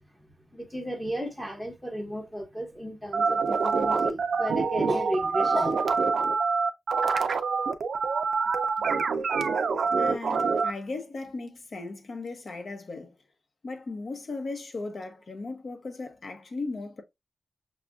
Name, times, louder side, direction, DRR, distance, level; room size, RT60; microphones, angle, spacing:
voice 1, 0.5-5.8, equal, 5° left, 0.9 m, -33 dB
sound 1, 3.1-10.7, right 5 dB, 65° right, 0.4 m, -26 dB
voice 2, 10.0-13.2 13.6-17.0, left 3 dB, 45° left, 0.8 m, -37 dB
6.1 x 2.4 x 2.3 m
wide cardioid pair, 140°, 0 cm